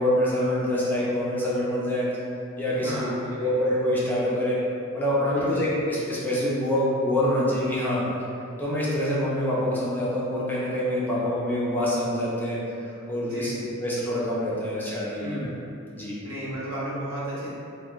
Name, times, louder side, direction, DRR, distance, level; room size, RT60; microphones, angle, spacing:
voice 1, 0.0-2.1 2.6-4.6 4.9-8.0 8.6-12.6 13.1-15.5 15.9-16.1, left 1 dB, 10° left, -8 dB, 0.5 m, -25 dB
voice 2, 2.7-3.7 5.3-5.6 13.2-13.8 15.2-15.5 16.2-17.5, equal, 80° right, -8 dB, 0.9 m, -34 dB
3.5 x 2.2 x 3.0 m, 2.7 s
head